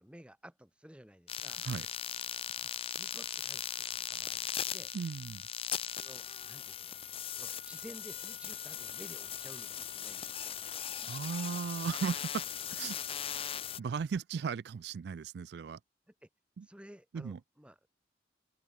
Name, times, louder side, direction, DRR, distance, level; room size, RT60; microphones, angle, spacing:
voice 1, 0.0-1.6 2.6-4.9 6.0-7.0 7.3-10.5 16.1-16.3 16.6-17.8, equal, 5° right, 1.8 m, -54 dB
sound 1, 1.3-13.8, left 9 dB, 35° left, 0.7 m, -39 dB
voice 2, 4.9-5.4 11.0-12.4 12.7-13.0 13.8-15.8 16.6-16.7 17.1-17.4, right 6 dB, 65° right, 0.3 m, -36 dB
head